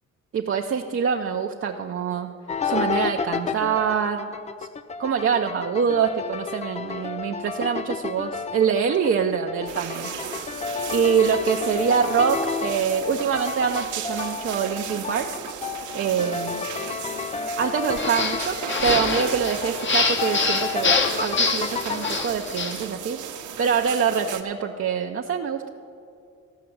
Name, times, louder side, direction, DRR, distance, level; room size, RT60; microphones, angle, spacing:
voice 1, 0.3-2.3 2.6-4.3 5.0-10.1 10.9-15.3 15.9-16.7 17.6-23.2 23.6-25.7, right 7 dB, 45° right, 2 dB, 0.7 m, -25 dB
sound 1, 2.5-22.2, left 5 dB, 25° left, 0.4 m, -32 dB
sound 2, 9.7-24.4, right 9 dB, 75° right, 1.0 m, -36 dB
sound 3, 18.0-22.8, left 4 dB, 40° left, 1.1 m, -25 dB
14.0 x 5.7 x 7.8 m, 2.4 s
cardioid pair, 90°, 30 cm